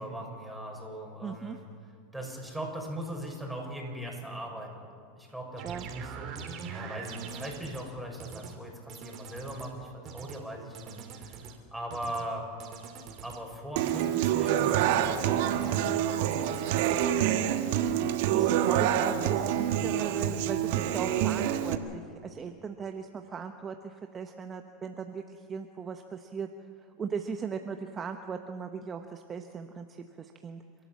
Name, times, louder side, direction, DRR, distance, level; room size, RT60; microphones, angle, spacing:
voice 1, 0.0-1.7 2.1-4.9 5.1-12.5 13.2-16.9, right 1 dB, ahead, -1 dB, 6.7 m, -40 dB
voice 2, 1.2-1.6 5.6-5.9 18.3-26.5 27.0-30.6, right 6 dB, 25° right, 6 dB, 1.2 m, -38 dB
sound 1, 5.6-7.9 8.2-8.5 8.9-9.7 10.0-10.4 10.7-11.6 11.9-12.3 12.6-13.4 13.8-14.1 14.4-15.3 15.6-16.0 16.3-17.1, right 6 dB, 45° right, 3.1 m, -43 dB
Human voice / Acoustic guitar, 13.8-21.7, right 11 dB, 65° right, 1.5 m, -27 dB
30.0 x 13.0 x 7.5 m, 2.3 s
hypercardioid pair, 100°, 0 cm